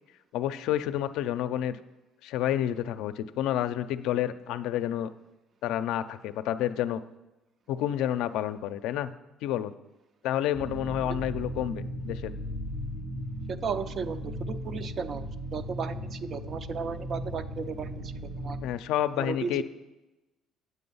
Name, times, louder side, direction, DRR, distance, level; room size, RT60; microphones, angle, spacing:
voice 1, 0.3-1.8 2.2-5.1 5.6-7.0 7.7-9.1 9.4-9.7 10.2-12.3 18.6-19.6, left 11 dB, 80° left, 11 dB, 0.4 m, -29 dB
sound 1, 10.5-18.7, equal, 75° right, 3.9 m, -37 dB
voice 2, 13.5-15.3 15.5-18.6 19.2-19.6, right 5 dB, 45° right, 12 dB, 0.5 m, -35 dB
8.2 x 7.7 x 5.5 m, 1.0 s
cardioid pair, 110°, 0 cm